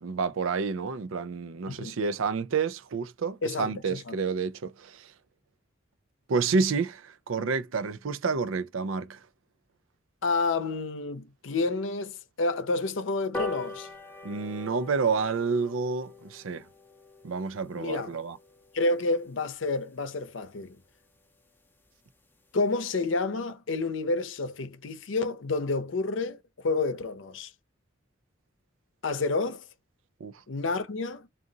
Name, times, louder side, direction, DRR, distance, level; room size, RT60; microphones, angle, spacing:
voice 1, 0.0-5.1 6.3-9.2 14.2-16.6 17.2-18.4 30.2-30.3, right 5 dB, 85° right, 0.5 m, -29 dB
voice 2, 1.7-2.0 3.4-4.2 10.2-13.9 17.8-18.1 18.7-20.8 22.5-27.5 29.0-29.6 30.5-31.3, left 3 dB, 70° left, 0.6 m, -29 dB
sound 1, 13.3-20.1 20.5-20.6 20.9-21.0 21.3-21.4 21.7-21.8 22.1-22.4 22.8-22.9, left 2 dB, 10° left, 0.6 m, -42 dB
3.8 x 2.5 x 3.8 m
head